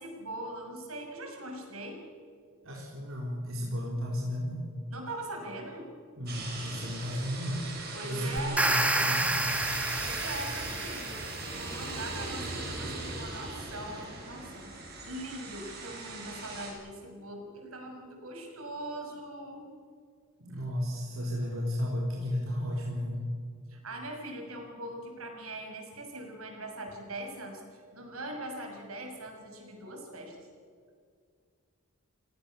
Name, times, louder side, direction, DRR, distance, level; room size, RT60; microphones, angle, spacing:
voice 1, 0.0-2.0 4.9-5.9 7.9-8.6 9.9-11.2 11.5-14.7 15.0-19.7 23.7-30.5, right 1 dB, 80° right, 2 dB, 6.4 m, -41 dB
voice 2, 2.6-4.7 6.2-7.7 8.1-9.6 20.4-23.2, equal, 65° right, -3 dB, 4.1 m, -33 dB
sound 1, 6.3-16.7, right 3 dB, 45° right, 6.9 m, -39 dB
sound 2, 8.4-11.5, right 1 dB, 5° right, 1.6 m, -29 dB
29.5 x 18.0 x 7.2 m, 2.2 s
head